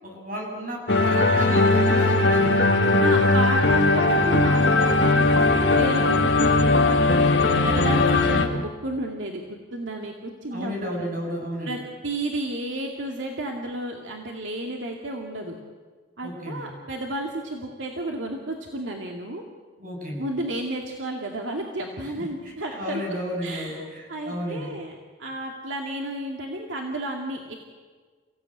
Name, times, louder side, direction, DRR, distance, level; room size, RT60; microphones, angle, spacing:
voice 1, 0.0-2.6 10.5-11.8 16.2-16.7 19.8-20.3 22.2-24.8, equal, 45° right, 0 dB, 7.8 m, -33 dB
sound 1, 0.9-8.5, left 2 dB, 65° left, 2.1 m, -19 dB
voice 2, 3.0-11.0 11.7-11.8 12.0-15.5 16.2-19.4 20.2-23.0 23.4-24.9 25.2-27.6, right 1 dB, 75° right, 1 dB, 2.3 m, -32 dB
29.5 x 16.5 x 9.3 m, 1.5 s
head